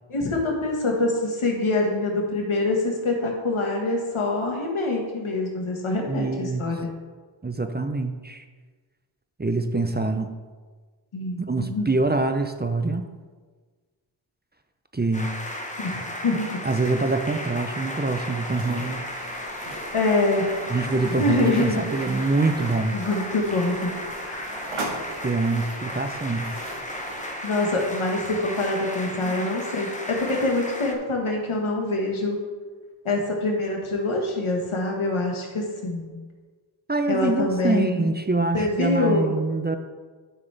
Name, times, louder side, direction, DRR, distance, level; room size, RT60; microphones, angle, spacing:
voice 1, 0.1-6.8 11.1-11.9 15.8-15.9 16.2-16.7 19.9-20.6 21.1-21.8 22.9-24.6 27.4-32.4 33.0-36.1 37.1-38.1 38.5-39.4, left 2 dB, 85° left, 0 dB, 1.6 m, -25 dB
voice 2, 6.1-6.6 7.4-8.4 9.4-10.3 11.5-13.1 14.9-15.3 16.6-19.1 20.7-22.9 25.2-26.5 29.2-29.3 36.9-39.8, right 3 dB, 20° right, 7 dB, 0.6 m, -25 dB
sound 1, 15.1-30.9, left 1 dB, 15° left, 1.1 m, -35 dB
sound 2, 18.5-27.3, right 1 dB, 85° right, 1.3 m, -39 dB
11.0 x 5.8 x 3.4 m, 1.4 s
cardioid pair, 45°, 48 cm